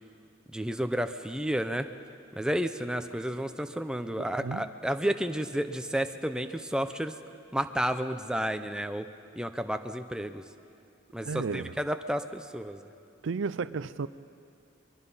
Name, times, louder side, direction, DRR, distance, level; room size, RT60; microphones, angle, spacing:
voice 1, 0.5-1.9 2.4-7.2 7.5-9.1 9.4-10.4 11.1-12.9, equal, 5° right, 0.7 m, -31 dB
voice 2, 4.2-4.7 11.2-11.7 13.2-14.1, right 4 dB, 65° right, 0.5 m, -33 dB
22.5 x 22.5 x 5.7 m
head